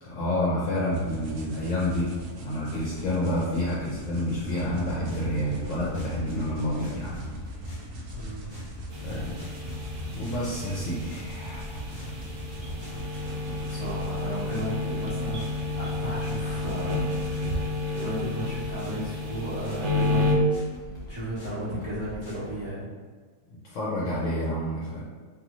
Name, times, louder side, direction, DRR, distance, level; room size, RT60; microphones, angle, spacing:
voice 1, 0.0-7.3 9.0-9.4 10.1-11.9 13.0-13.6 23.5-25.0, left 1 dB, 65° left, -6 dB, 0.9 m, -29 dB
sound 1, 0.9-17.6, right 1 dB, 70° right, 0.8 m, -39 dB
sound 2, 4.8-22.7, left 2 dB, 25° left, 0.6 m, -45 dB
voice 2, 8.1-8.6 13.5-17.2 17.4-20.4 21.1-22.9, equal, 35° right, -11 dB, 0.4 m, -34 dB
sound 3, 8.9-20.3, left 2 dB, 90° right, 0.4 m, -31 dB
2.6 x 2.6 x 2.9 m, 1.5 s
omnidirectional pair, 1.6 m